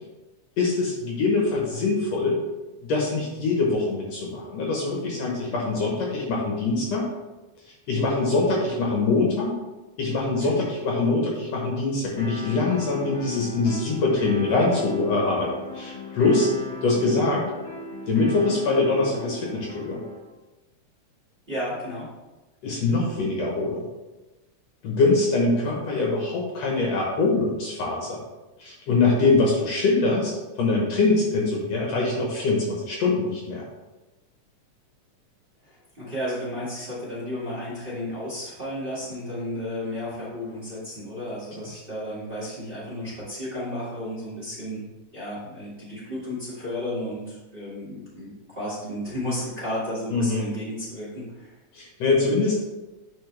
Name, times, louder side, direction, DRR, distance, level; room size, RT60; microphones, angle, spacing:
voice 1, 0.6-2.4 2.8-7.1 7.9-9.5 10.0-16.5 16.8-17.4 18.1-20.0 22.6-23.9 24.8-28.2 28.6-30.3 30.6-33.6 50.1-50.5 51.7-52.6, left 3 dB, 65° left, -2 dB, 2.1 m, -23 dB
sound 1, 12.2-20.2, left 3 dB, 40° left, 2.0 m, -36 dB
voice 2, 21.5-22.1 35.7-44.8 45.1-51.5, left 1 dB, 20° right, -9 dB, 1.8 m, -33 dB
9.4 x 4.5 x 3.3 m, 1.1 s
omnidirectional pair, 3.6 m